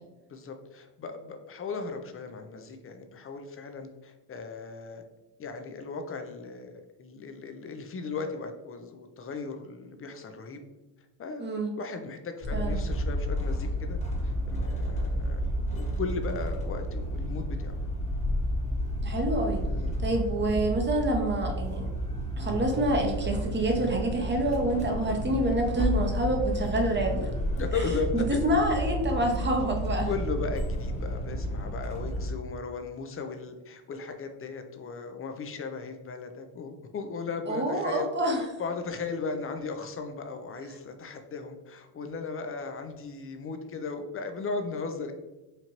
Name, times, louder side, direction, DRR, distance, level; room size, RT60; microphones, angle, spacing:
voice 1, 0.3-5.0 5.4-6.7 7.0-10.6 11.2-11.5 11.8-14.0 14.2-17.7 19.8-19.9 27.5-28.4 30.0-45.1, left 4 dB, 30° left, 6 dB, 0.5 m, -36 dB
voice 2, 11.4-11.7 12.5-12.8 19.0-19.6 20.0-21.9 22.4-27.3 28.1-30.1 37.5-38.4, right 1 dB, 25° right, 2 dB, 0.8 m, -27 dB
sound 1, 12.4-32.3, equal, 15° left, 1.0 m, -31 dB
4.4 x 2.6 x 2.9 m, 1.1 s
cardioid pair, 85°, 47 cm